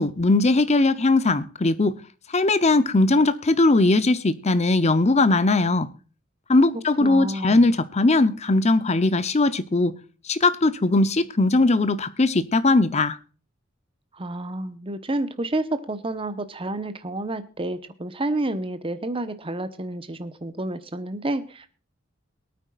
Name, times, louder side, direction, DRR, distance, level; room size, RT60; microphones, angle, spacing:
voice 1, 0.0-2.0 2.3-5.9 6.5-9.9 10.3-13.2, left 2 dB, 35° left, 0.8 m, -20 dB
voice 2, 7.0-7.6 14.2-21.7, right 2 dB, 25° right, 1.1 m, -29 dB
22.5 x 9.1 x 2.5 m
head